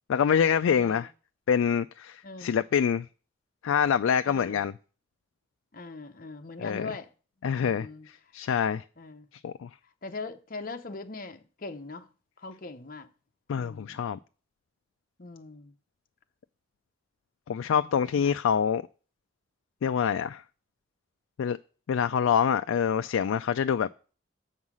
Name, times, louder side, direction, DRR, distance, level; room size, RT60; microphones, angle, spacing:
voice 1, 0.1-1.1 1.5-3.1 3.6-4.7 6.6-6.9 7.4-7.9 8.3-8.8 9.4-9.7 13.5-14.2 17.5-18.8 19.8-20.4 21.4-21.6 21.9-23.9, left 7 dB, 90° left, 0.3 m, -25 dB
voice 2, 0.7-1.1 2.2-2.5 4.2-4.6 5.7-7.1 7.4-8.1 9.0-9.3 10.0-12.1 12.4-13.1 13.5-14.0 15.2-15.7 18.2-18.4, left 3 dB, 45° left, 0.8 m, -41 dB
7.3 x 5.5 x 6.1 m
head